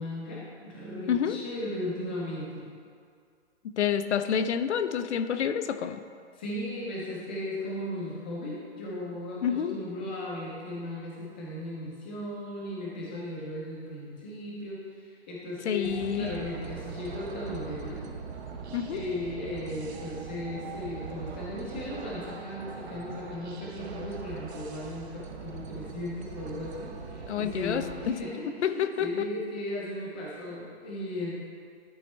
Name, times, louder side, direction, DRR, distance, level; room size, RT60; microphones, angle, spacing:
voice 1, 0.0-2.6 6.3-18.1 18.9-31.4, left 1 dB, 10° left, -5 dB, 0.4 m, -36 dB
voice 2, 1.1-1.4 3.6-6.0 9.4-9.8 15.6-16.3 18.7-19.0 27.3-28.2 28.6-29.3, left 8 dB, 85° left, 10 dB, 0.6 m, -28 dB
sound 1, 15.8-28.1, right 5 dB, 75° right, 0.9 m, -41 dB
11.0 x 4.3 x 3.1 m, 2.2 s
hypercardioid pair, 160°, 33 cm